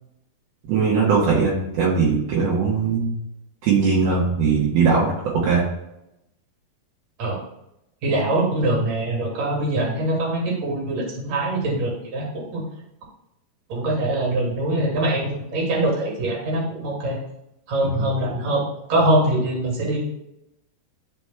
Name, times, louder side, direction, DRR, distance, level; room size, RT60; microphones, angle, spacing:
voice 1, 0.7-3.2 3.6-5.1 5.4-5.7 18.0-18.1, right 5 dB, 70° right, -5 dB, 3.0 m, -20 dB
voice 2, 8.0-12.6 13.7-17.2 17.7-20.0, right 1 dB, 45° right, -1 dB, 3.1 m, -23 dB
13.0 x 5.0 x 2.3 m, 0.85 s
omnidirectional pair, 4.8 m